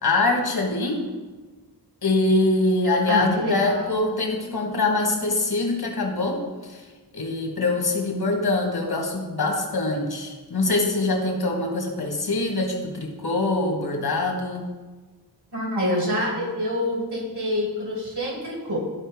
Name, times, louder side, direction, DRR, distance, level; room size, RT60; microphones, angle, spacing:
voice 1, 0.0-1.0 2.0-6.9 7.1-14.6, left 2 dB, 65° left, 1 dB, 1.5 m, -24 dB
voice 2, 3.1-4.0 15.5-18.8, left 1 dB, 75° right, -3 dB, 2.5 m, -26 dB
12.5 x 4.3 x 3.5 m, 1.3 s
wide cardioid pair, 60°, 40 cm